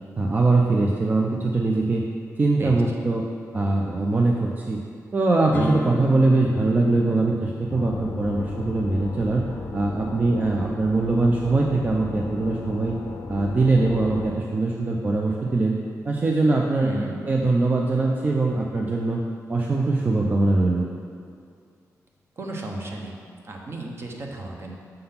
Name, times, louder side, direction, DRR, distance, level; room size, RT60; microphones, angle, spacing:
voice 1, 0.2-2.0 2.4-3.3 3.5-4.8 5.1-9.4 9.7-12.9 13.3-15.7 16.0-17.0 17.2-19.2 19.5-20.9, right 2 dB, 30° right, -1 dB, 0.4 m, -22 dB
sound 1, 5.5-13.3, left 2 dB, 25° left, 0.7 m, -37 dB
sound 2, 7.7-14.3, left 4 dB, 70° left, 0.5 m, -35 dB
voice 2, 16.8-17.2 22.4-23.2 23.4-24.8, right 2 dB, 45° right, 0 dB, 0.9 m, -33 dB
6.5 x 3.8 x 5.6 m, 2.3 s
wide cardioid pair, 130°, 6 cm